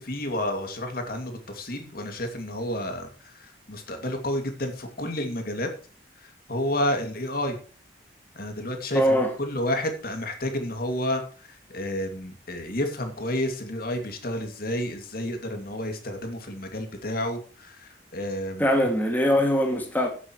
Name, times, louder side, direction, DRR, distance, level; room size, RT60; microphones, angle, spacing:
voice 1, 0.0-5.7 6.5-7.6 8.4-11.2 11.7-18.6, left 1 dB, 50° left, 2.5 m, -30 dB
voice 2, 8.9-9.3 18.6-20.1, equal, 10° left, 2.3 m, -22 dB
16.0 x 8.4 x 3.1 m
head